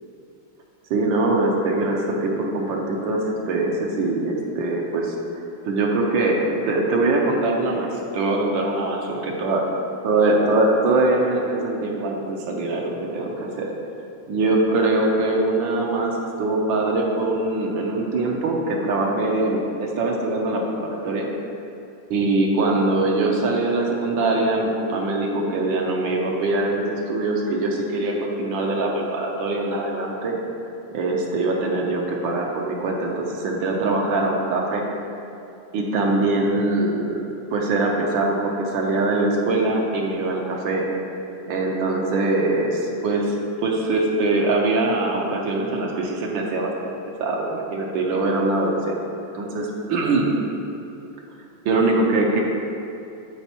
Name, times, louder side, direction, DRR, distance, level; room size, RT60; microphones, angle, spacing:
voice 1, 0.9-5.1 5.7-9.6 10.0-13.7 14.3-21.3 22.1-30.4 30.9-34.8 35.7-40.8 41.5-43.3 43.6-46.7 47.2-49.0 49.3-50.3 51.6-52.4, right 2 dB, 75° right, -1 dB, 1.4 m, -22 dB
11.5 x 4.4 x 2.9 m, 2.7 s
omnidirectional pair, 2.2 m